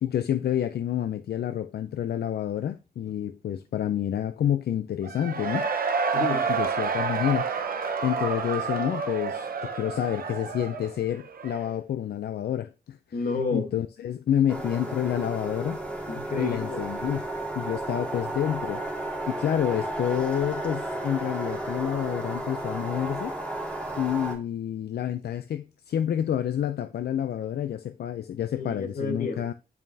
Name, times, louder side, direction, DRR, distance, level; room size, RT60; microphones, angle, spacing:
voice 1, 0.0-5.7 6.5-13.0 13.5-15.8 16.4-17.3 17.6-18.8 19.3-23.4 24.0-29.5, left 10 dB, 80° left, 0.4 m, -29 dB
Cheering / Crowd, 5.0-11.8, right 5 dB, 65° right, 0.9 m, -29 dB
voice 2, 6.1-6.5 13.1-13.7 16.1-16.8 28.6-29.5, left 4 dB, 55° left, 1.3 m, -30 dB
sound 1, 14.5-24.4, right 1 dB, 5° left, 1.9 m, -33 dB
9.2 x 5.3 x 2.7 m
wide cardioid pair, 140°, 16 cm